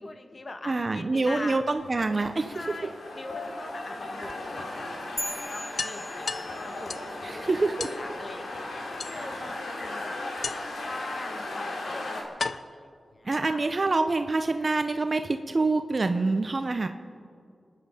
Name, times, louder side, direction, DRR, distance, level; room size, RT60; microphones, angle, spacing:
voice 1, 0.0-1.6 2.5-5.0 5.3-7.5 7.9-8.6 9.1-10.2 10.8-13.7, left 2 dB, 45° left, 6 dB, 1.6 m, -42 dB
voice 2, 0.6-2.9 7.2-7.9 9.1-9.5 13.2-16.9, right 3 dB, 45° right, 7 dB, 0.8 m, -26 dB
sound 1, 1.5-12.2, left 2 dB, 90° left, 2.9 m, -37 dB
sound 2, 1.8-2.8 4.3-4.4 4.8-4.9 5.2-5.3 5.8-7.2 7.8-8.0 9.0-9.6 10.4-10.9 11.7-11.8 12.4-13.8, left 4 dB, 65° left, 0.6 m, -36 dB
sound 3, 5.2-6.9, left 1 dB, 15° left, 2.1 m, -38 dB
26.5 x 10.5 x 5.1 m, 2.3 s
cardioid pair, 55°, 0 cm